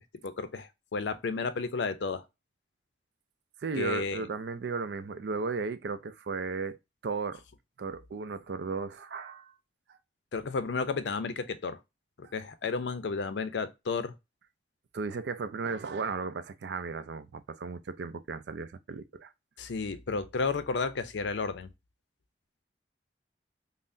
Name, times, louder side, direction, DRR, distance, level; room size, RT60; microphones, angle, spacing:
voice 1, 0.2-2.2 3.8-4.3 10.3-11.8 12.2-14.1 19.6-21.7, left 4 dB, 75° left, 0.5 m, -32 dB
voice 2, 3.6-6.8 7.0-7.4 7.8-9.5 9.9-10.0 12.2-12.3 14.9-19.3, right 4 dB, 70° right, 0.4 m, -35 dB
5.5 x 2.0 x 2.5 m
head